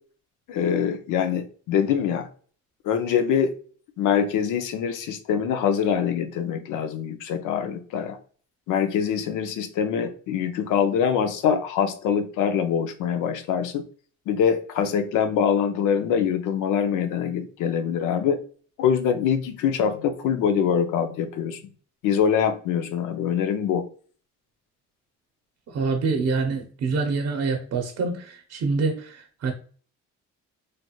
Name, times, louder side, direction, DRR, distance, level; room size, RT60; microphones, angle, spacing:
voice 1, 0.5-2.3 2.8-3.5 4.0-8.2 8.7-13.8 14.3-18.4 18.8-21.6 22.0-23.8, left 8 dB, 90° left, 8 dB, 0.6 m, -24 dB
voice 2, 25.7-29.5, right 4 dB, 55° right, 4 dB, 0.6 m, -26 dB
3.3 x 2.9 x 2.3 m, 0.43 s
cardioid pair, 90°, 30 cm